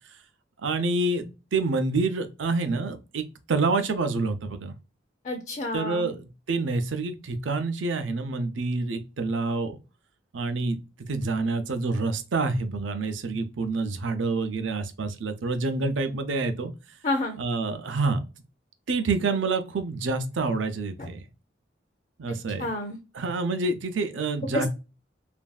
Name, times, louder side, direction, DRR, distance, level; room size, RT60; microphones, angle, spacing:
voice 1, 0.6-4.7 5.7-9.8 10.3-10.8 11.1-16.7 17.4-18.2 18.9-21.2 22.2-22.7 23.1-24.7, right 3 dB, 80° right, 0.5 m, -27 dB
voice 2, 5.2-6.1 17.0-17.4 22.3-23.0 24.5-24.7, left 2 dB, 40° left, 0.5 m, -30 dB
3.1 x 2.5 x 2.2 m
head